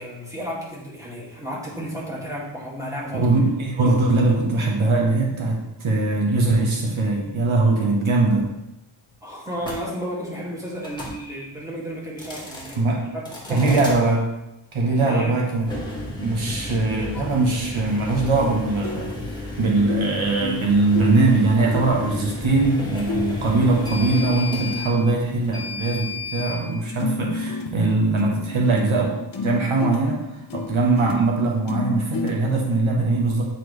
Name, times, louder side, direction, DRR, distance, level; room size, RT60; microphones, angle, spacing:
voice 1, 0.0-3.2 3.8-3.9 9.2-13.8 15.0-15.4, equal, 5° right, -5 dB, 2.1 m, -33 dB
voice 2, 3.1-8.5 12.8-13.1 13.5-14.2 14.7-15.7 16.2-19.1 19.6-29.2 29.4-33.4, right 3 dB, 70° right, -1 dB, 1.3 m, -21 dB
sound 1, 9.6-9.8 10.8-11.2 12.1-12.8 13.2-14.0 15.6-26.6, left 2 dB, 10° left, 1.7 m, -33 dB
sound 2, 15.9-17.9 18.3-18.6 18.8-26.5 26.7-32.8, left 4 dB, 45° left, 0.9 m, -33 dB
9.0 x 4.2 x 3.2 m, 0.91 s
wide cardioid pair, 90°, 50 cm